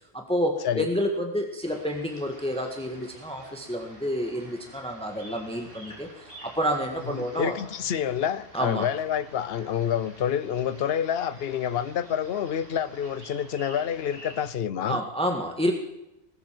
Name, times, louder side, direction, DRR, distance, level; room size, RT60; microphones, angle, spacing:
voice 1, 0.1-7.5 8.5-8.9 14.9-15.7, equal, 5° left, 3 dB, 1.6 m, -29 dB
sound 1, 1.6-14.5, right 1 dB, 60° right, 4.5 m, -49 dB
voice 2, 7.1-15.0, left 9 dB, 65° left, 16 dB, 0.9 m, -28 dB
20.0 x 8.0 x 7.5 m, 0.90 s
omnidirectional pair, 1.1 m